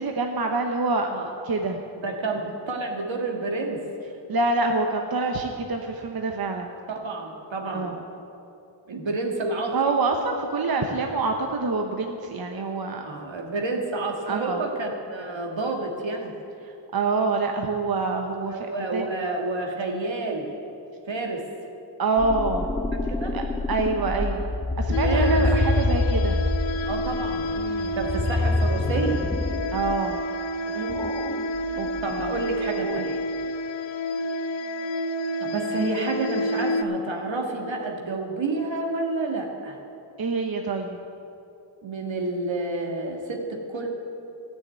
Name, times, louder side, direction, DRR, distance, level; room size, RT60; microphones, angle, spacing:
voice 1, 0.0-1.1 1.4-1.8 4.3-6.7 7.7-8.0 9.7-13.1 14.3-14.6 16.6-18.7 18.9-19.1 22.0-22.7 23.3-24.5 24.8-26.4 27.5-27.9 29.7-30.2 31.8-32.3 32.8-33.2 40.2-41.0, right 3 dB, 50° right, 3 dB, 0.9 m, -26 dB
voice 2, 2.0-3.8 6.9-7.9 8.9-9.8 13.0-16.3 18.3-20.5 21.1-21.5 23.1-23.4 25.0-25.4 26.9-27.5 27.9-29.2 30.7-31.0 32.0-33.1 35.4-39.8 41.8-43.9, right 3 dB, 75° right, 1 dB, 1.8 m, -29 dB
sound 1, 22.2-30.0 30.9-32.7, left 2 dB, 10° left, 0.4 m, -27 dB
sound 2, 24.9-36.8, equal, 70° left, 0.7 m, -29 dB
13.5 x 6.5 x 8.9 m, 2.8 s
wide cardioid pair, 85°, 46 cm